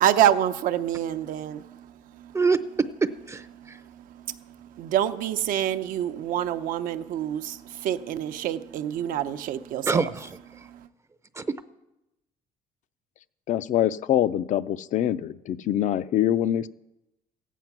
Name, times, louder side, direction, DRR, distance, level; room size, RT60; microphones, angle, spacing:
voice 1, 0.0-2.3 3.6-10.0 10.5-10.9, right 11 dB, 75° right, 0.7 m, -27 dB
voice 2, 3.0-3.8 9.9-10.7 11.3-11.5, right 4 dB, 20° right, 0.5 m, -26 dB
voice 3, 13.5-16.7, left 11 dB, 60° left, 0.5 m, -24 dB
15.0 x 9.2 x 6.0 m
cardioid pair, 110°, 14 cm